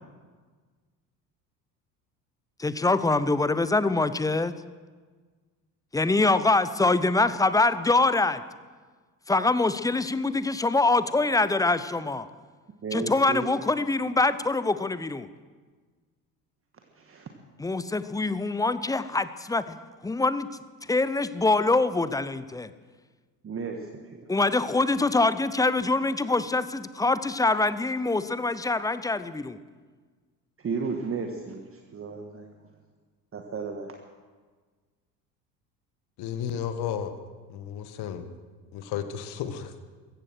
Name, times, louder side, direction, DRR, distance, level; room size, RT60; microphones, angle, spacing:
voice 1, 2.6-4.5 5.9-8.4 9.3-12.3 12.9-15.3 17.6-19.8 20.0-20.5 20.9-22.7 24.3-29.6, left 3 dB, 5° left, 14 dB, 0.6 m, -24 dB
voice 2, 12.8-13.5 16.9-17.3 23.4-24.3 30.6-32.6 33.3-33.9, right 5 dB, 25° right, 3 dB, 1.6 m, -34 dB
voice 3, 36.2-37.1 37.5-38.3 38.7-39.8, left 9 dB, 50° left, 9 dB, 1.7 m, -33 dB
15.5 x 15.0 x 6.3 m, 1.4 s
figure-of-eight pair, 65°, 50 cm